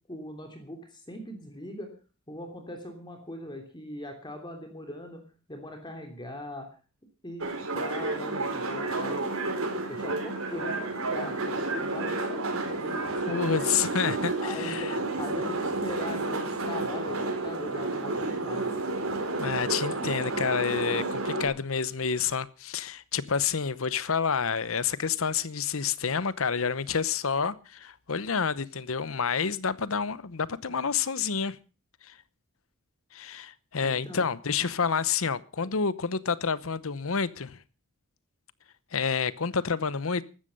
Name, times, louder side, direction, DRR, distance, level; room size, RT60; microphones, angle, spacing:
voice 1, 0.1-1.9 2.3-5.2 5.5-6.7 7.2-9.2 9.9-13.8 14.4-18.7 33.8-34.3 35.6-35.7, left 1 dB, 20° left, 3.2 m, -40 dB
sound 1, 7.4-21.4, right 2 dB, 70° right, 4.2 m, -31 dB
voice 2, 13.3-14.9 19.4-31.6 32.0-32.2 33.1-37.6 38.9-40.2, left 6 dB, 70° left, 0.9 m, -29 dB
15.5 x 13.0 x 5.4 m
head